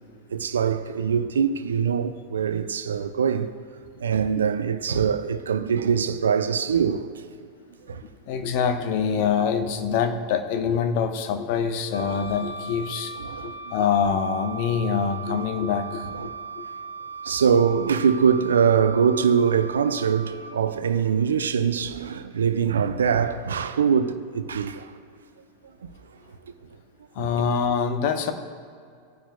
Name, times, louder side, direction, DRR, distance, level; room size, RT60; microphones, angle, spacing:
voice 1, 0.3-3.5 4.0-7.0 7.9-8.0 13.2-13.6 16.1-16.3 17.2-24.9 27.2-27.3, right 7 dB, 65° right, 0.5 m, -23 dB
voice 2, 8.3-13.2 13.4-16.1 27.1-28.3, left 6 dB, 45° left, 1.0 m, -25 dB
Wind instrument woodwind instrument, 11.9-20.6, right 4 dB, 85° left, 0.8 m, -38 dB
19.0 x 10.0 x 2.3 m
figure-of-eight pair, 90°, 0 cm